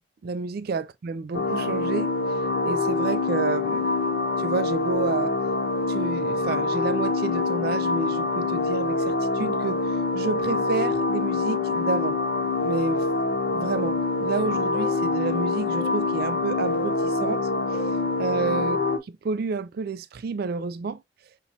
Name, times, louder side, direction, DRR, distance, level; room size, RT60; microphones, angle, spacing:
voice 1, 0.2-3.9 4.4-5.3 5.9-12.2 12.6-13.1 13.5-18.8 19.2-21.0, right 4 dB, 55° right, 0.4 m, -30 dB
sound 1, 1.3-19.0, left 3 dB, 60° left, 0.6 m, -25 dB
Standard beep pre-start, 13.7-14.0 14.7-15.0 15.7-16.0 16.7-17.0 17.7-18.0 18.7-19.1, equal, 10° left, 0.5 m, -41 dB
5.6 x 3.0 x 2.7 m
head